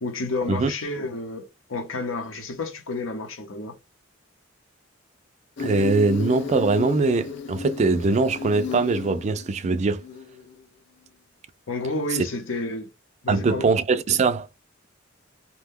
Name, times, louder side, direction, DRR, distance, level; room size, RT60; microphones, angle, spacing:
voice 1, 0.0-3.7 11.7-12.9 13.2-13.7, left 2 dB, 80° left, 0.8 m, -30 dB
Insect, 5.6-10.5, left 4 dB, 60° left, 0.4 m, -33 dB
voice 2, 5.6-10.0 13.3-14.5, right 3 dB, 35° right, 0.3 m, -22 dB
2.7 x 2.2 x 3.5 m
head